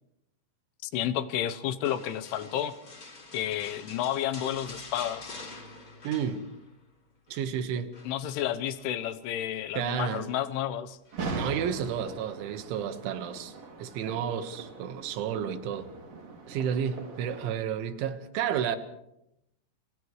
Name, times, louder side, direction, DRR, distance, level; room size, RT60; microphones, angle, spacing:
voice 1, 0.8-2.7 3.3-5.3 8.0-11.0, left 11 dB, 75° left, 3.3 m, -31 dB
sound 1, 1.8-6.9 7.1-7.5 7.9-9.0 10.1-10.5 11.1-11.2, left 3 dB, 30° left, 2.5 m, -47 dB
voice 2, 6.0-6.4 7.3-7.9 9.8-10.3 11.3-15.9 16.5-18.8, right 8 dB, 70° right, 3.7 m, -31 dB
sound 2, 11.1-17.5, right 3 dB, 40° right, 3.2 m, -40 dB
30.0 x 29.0 x 3.2 m
omnidirectional pair, 5.9 m